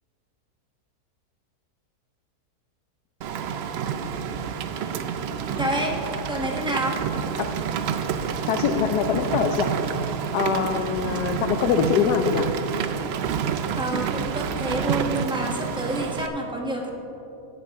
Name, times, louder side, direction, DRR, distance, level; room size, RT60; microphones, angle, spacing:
Rain, 3.2-16.3, right 7 dB, 80° right, 0.5 m, -28 dB
voice 1, 5.6-6.0 6.3-7.0 13.7-16.9, right 1 dB, 5° right, -1 dB, 0.9 m, -28 dB
voice 2, 8.5-9.7 10.3-12.5, left 7 dB, 90° left, 5 dB, 1.2 m, -23 dB
16.5 x 7.6 x 3.6 m, 2.9 s
omnidirectional pair, 1.7 m